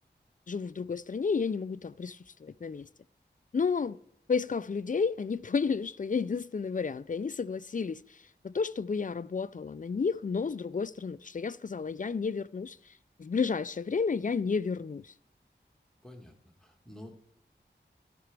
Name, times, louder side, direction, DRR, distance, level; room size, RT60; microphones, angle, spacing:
voice 1, 0.5-2.9 3.5-4.0 4.3-12.9 13.2-15.1, left 5 dB, 45° left, 0.4 m, -31 dB
voice 2, 16.0-17.1, left 1 dB, 5° left, 1.6 m, -49 dB
17.0 x 6.0 x 3.4 m
wide cardioid pair, 55°, 19 cm